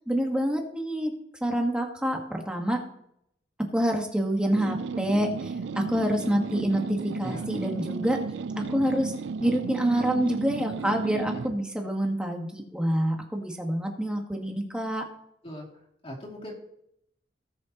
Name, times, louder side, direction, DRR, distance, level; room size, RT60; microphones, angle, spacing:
voice 1, 0.1-1.1 1.4-2.8 3.7-5.3 5.7-8.2 8.6-9.1 9.4-15.0, right 1 dB, 5° right, 2 dB, 1.4 m, -27 dB
sound 1, 4.6-11.6, right 4 dB, 75° right, 0.4 m, -34 dB
voice 2, 16.0-16.5, equal, 35° left, -2 dB, 2.7 m, -39 dB
18.0 x 6.4 x 2.9 m, 0.74 s
head